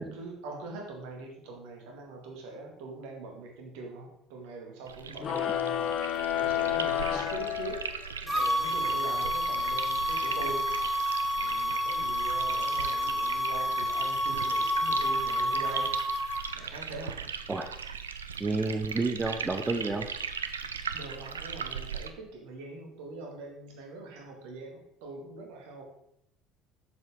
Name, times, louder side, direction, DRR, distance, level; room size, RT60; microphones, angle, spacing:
voice 1, 0.0-7.9 8.2-11.0 11.4-16.0 16.5-17.3 20.9-25.8, right 2 dB, 65° right, 1 dB, 2.0 m, -43 dB
sound 1, 4.9-22.1, right 6 dB, 80° right, 0.4 m, -38 dB
sound 2, 5.2-8.2, left 11 dB, 45° left, 0.6 m, -30 dB
sound 3, 8.3-16.4, equal, 5° right, 1.2 m, -29 dB
voice 2, 18.4-20.1, right 3 dB, 20° right, 6 dB, 0.8 m, -30 dB
8.0 x 7.2 x 3.7 m, 0.75 s
figure-of-eight pair, 60°, 0 cm